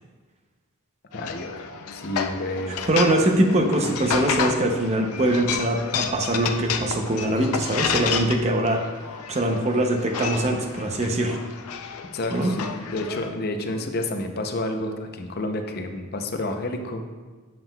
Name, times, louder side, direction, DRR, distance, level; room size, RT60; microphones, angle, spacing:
sound 1, 1.1-13.3, left 6 dB, 90° left, 0.5 m, -31 dB
voice 1, 1.1-1.5 1.9-2.7 12.1-17.1, left 1 dB, 45° left, 5 dB, 0.6 m, -30 dB
voice 2, 2.7-8.9 9.3-11.4 12.3-12.5, right 1 dB, 30° right, 3 dB, 0.6 m, -22 dB
7.6 x 7.2 x 2.3 m, 1.4 s
head